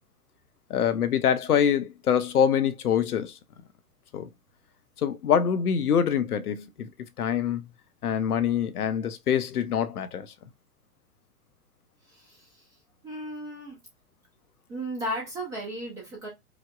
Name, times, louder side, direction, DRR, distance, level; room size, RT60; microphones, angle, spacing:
voice 1, 0.7-3.3 4.1-4.3 5.0-6.9 7.2-7.6 8.0-10.3, left 8 dB, 75° left, 0.6 m, -25 dB
voice 2, 12.1-12.6 13.0-13.8 14.7-16.3, equal, 10° right, 0.4 m, -35 dB
4.8 x 2.0 x 2.3 m
figure-of-eight pair, 105°, 46 cm